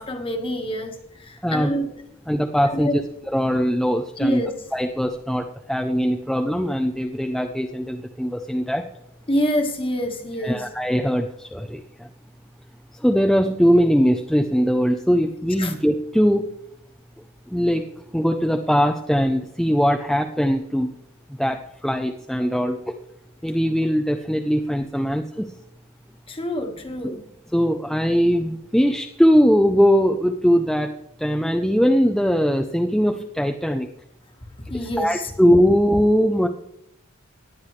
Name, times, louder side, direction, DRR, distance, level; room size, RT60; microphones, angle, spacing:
voice 1, 0.0-1.9 2.7-3.0 4.2-4.5 9.3-10.6 15.6-15.7 26.3-27.2 34.7-35.3, equal, 25° left, 4 dB, 1.5 m, -26 dB
voice 2, 2.3-3.0 3.3-4.4 4.7-8.8 10.4-12.1 12.9-16.5 17.5-17.8 18.1-20.9 21.4-22.9 23.4-25.5 27.0-27.2 27.5-30.9 31.2-33.9 35.0-36.5, equal, ahead, 4 dB, 0.5 m, -20 dB
18.0 x 10.0 x 3.2 m, 0.77 s
head